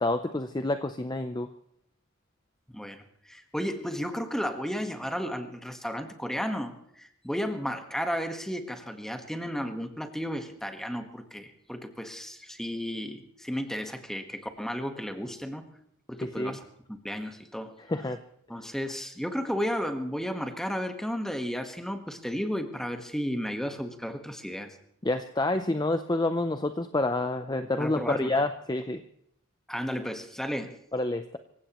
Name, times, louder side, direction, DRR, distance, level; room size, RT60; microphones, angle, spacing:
voice 1, 0.0-1.5 16.2-16.6 17.9-18.2 25.0-29.0 30.9-31.4, left 2 dB, 20° left, 9 dB, 0.5 m, -28 dB
voice 2, 2.7-15.6 16.1-16.6 16.9-17.7 18.5-24.8 27.8-28.4 29.7-30.8, equal, ahead, 6 dB, 1.4 m, -33 dB
25.5 x 16.0 x 3.1 m, 0.73 s
head